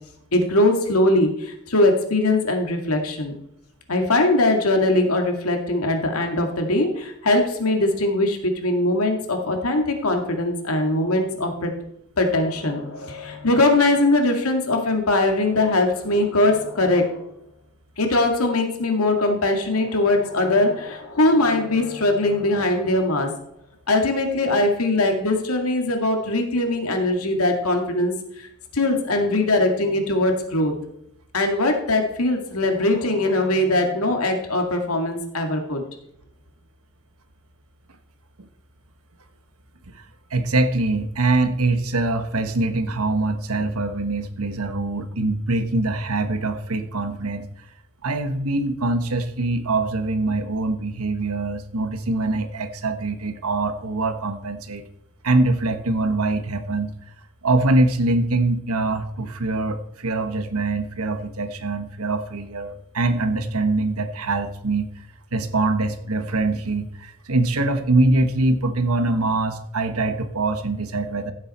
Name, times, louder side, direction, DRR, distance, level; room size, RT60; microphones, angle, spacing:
voice 1, 0.3-3.3 3.9-11.7 12.2-17.1 18.0-23.3 23.9-28.2 28.7-30.7 31.3-35.8, left 2 dB, 80° left, 4 dB, 2.2 m, -21 dB
voice 2, 40.3-47.5 48.0-54.9 55.2-56.9 57.4-64.9 65.3-71.3, right 2 dB, 80° right, 9 dB, 1.3 m, -23 dB
15.0 x 7.7 x 4.3 m, 0.77 s
head